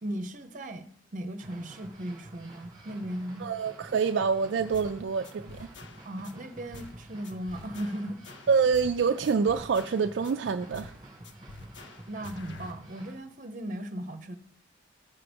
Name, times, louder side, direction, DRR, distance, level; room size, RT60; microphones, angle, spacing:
voice 1, 0.0-3.5 6.0-8.2 12.1-14.4, right 1 dB, 40° right, 0.8 m, -37 dB
sound 1, 1.4-13.2, right 1 dB, 25° right, 2.0 m, -49 dB
voice 2, 3.4-5.7 8.5-11.0, right 5 dB, 65° right, 0.3 m, -26 dB
sound 2, 4.7-5.0 5.2-6.3 6.7-7.0 7.2-9.0 9.2-10.3 10.7-11.0 11.2-12.7, left 3 dB, 60° left, 0.7 m, -47 dB
13.5 x 5.8 x 5.2 m
head